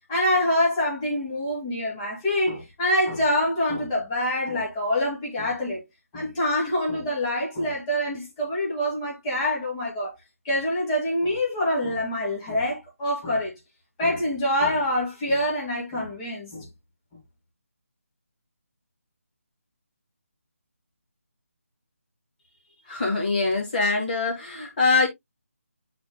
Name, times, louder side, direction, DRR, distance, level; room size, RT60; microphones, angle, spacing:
voice 1, 0.1-5.8 6.1-10.1 10.4-13.5 14.0-16.7, left 1 dB, 20° left, 2.4 m, -25 dB
voice 2, 22.9-25.1, left 3 dB, 35° left, 2.4 m, -23 dB
10.5 x 4.4 x 2.2 m
figure-of-eight pair, 155°, 8 cm